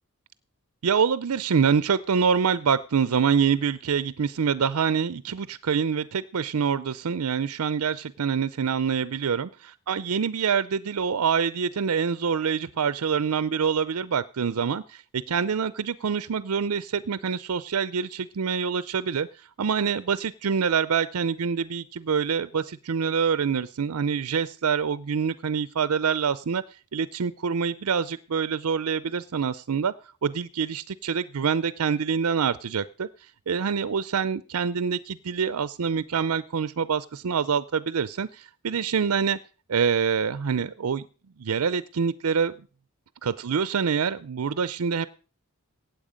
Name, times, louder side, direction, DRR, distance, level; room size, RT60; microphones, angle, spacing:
voice 1, 0.8-26.6 26.9-29.9 30.2-39.4 39.7-41.0 41.4-42.5 43.2-45.1, right 6 dB, 75° right, 16 dB, 0.5 m, -26 dB
16.0 x 9.1 x 5.1 m, 0.37 s
head